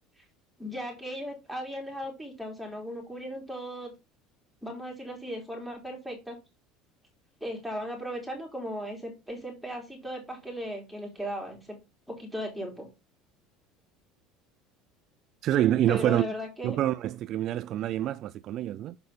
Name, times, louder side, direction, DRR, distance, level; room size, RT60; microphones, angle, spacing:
voice 1, 0.6-3.9 4.6-6.4 7.4-11.8 12.1-12.9 15.9-16.8, equal, ahead, 3.6 m, -37 dB
voice 2, 15.4-16.3 16.6-19.0, right 12 dB, 45° right, 0.3 m, -26 dB
6.8 x 5.4 x 4.3 m
cardioid pair, 145°, 0 cm